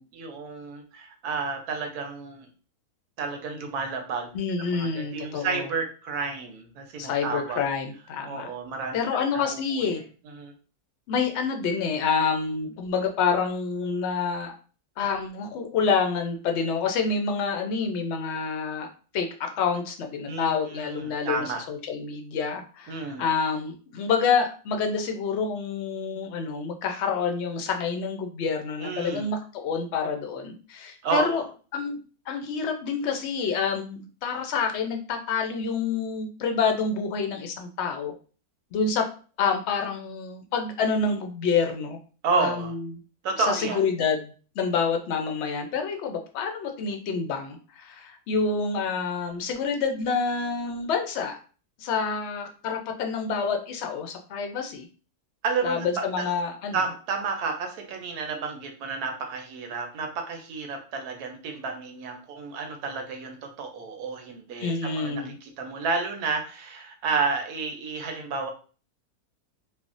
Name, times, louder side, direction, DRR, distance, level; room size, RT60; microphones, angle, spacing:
voice 1, 0.1-2.5 3.2-4.4 4.7-7.7 8.2-9.0 9.3-9.8 10.3-10.5 20.2-21.6 22.9-23.2 28.8-29.3 31.0-31.4 42.2-42.7 43.2-43.8 55.4-56.3 56.7-68.5, right 4 dB, 90° right, 4 dB, 1.2 m, -31 dB
voice 2, 4.3-5.7 7.0-8.5 8.9-10.0 11.1-14.5 15.0-31.4 31.7-32.0 32.3-38.1 38.7-39.0 39.4-42.0 42.4-42.9 43.5-51.4 51.8-54.9 55.6-56.8 64.6-65.4, left 5 dB, 70° left, 4 dB, 0.6 m, -28 dB
3.3 x 2.1 x 2.5 m, 0.38 s
omnidirectional pair, 1.6 m